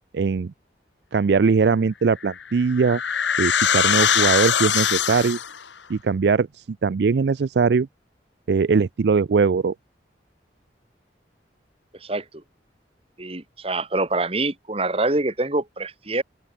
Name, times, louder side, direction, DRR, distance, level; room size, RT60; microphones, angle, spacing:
voice 1, 0.1-0.5 1.1-3.0 3.4-5.4 5.9-6.5 6.8-7.9 8.5-9.7, right 5 dB, 65° right, 0.4 m, -20 dB
sound 1, 2.2-5.6, left 8 dB, 85° left, 1.6 m, -22 dB
voice 2, 13.2-16.2, right 2 dB, 35° right, 2.1 m, -25 dB
open air
head